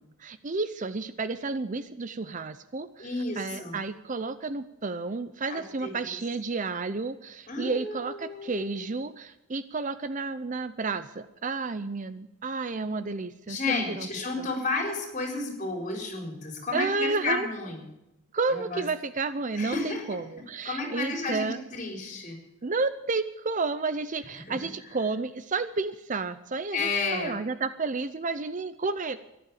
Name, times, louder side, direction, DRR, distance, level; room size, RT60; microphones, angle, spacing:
voice 1, 0.2-3.1 3.4-14.1 14.4-14.5 16.7-17.5 18.3-21.6 22.6-29.2, right 3 dB, 35° right, 13 dB, 0.6 m, -31 dB
voice 2, 3.0-3.8 5.5-6.2 7.5-8.9 13.5-17.8 18.5-18.8 19.6-20.2 20.6-22.4 24.5-24.6 26.7-27.4, left 3 dB, 35° left, 2 dB, 4.2 m, -32 dB
14.0 x 11.0 x 8.5 m, 0.89 s
head